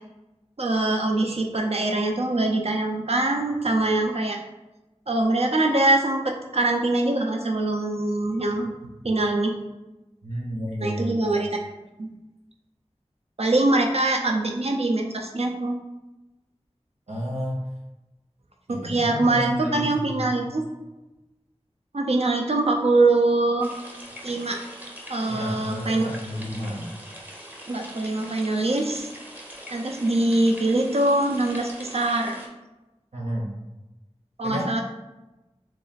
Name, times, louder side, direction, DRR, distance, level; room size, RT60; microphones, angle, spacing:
voice 1, 0.6-4.4 5.1-8.7 9.0-9.5 10.8-11.5 12.0-12.1 13.4-15.8 18.7-20.7 21.9-23.7 24.2-24.6 25.1-26.0 27.7-29.1 29.7-32.4 34.4-34.8, right 2 dB, 65° right, 2 dB, 0.5 m, -23 dB
voice 2, 10.2-11.2 17.1-17.6 18.7-20.5 25.3-26.9 33.1-33.5 34.4-34.8, equal, 80° right, -3 dB, 1.0 m, -31 dB
sound 1, 23.6-32.5, equal, 15° right, 0.8 m, -42 dB
3.1 x 2.5 x 4.0 m, 1.0 s
wide cardioid pair, 40°, 11 cm